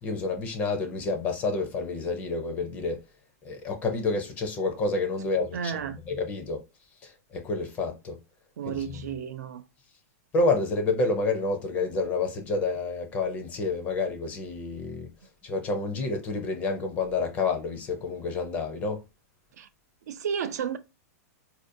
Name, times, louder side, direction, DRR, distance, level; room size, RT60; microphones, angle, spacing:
voice 1, 0.0-3.0 3.4-5.7 6.1-6.6 7.0-8.2 8.7-8.8 10.3-15.1 15.4-19.0, left 3 dB, 15° left, 0.4 m, -29 dB
voice 2, 5.5-6.0 8.6-9.6 19.6-19.7 20.1-20.8, right 7 dB, 85° right, 0.5 m, -32 dB
4.3 x 2.5 x 2.6 m
supercardioid pair, 175°, 9 cm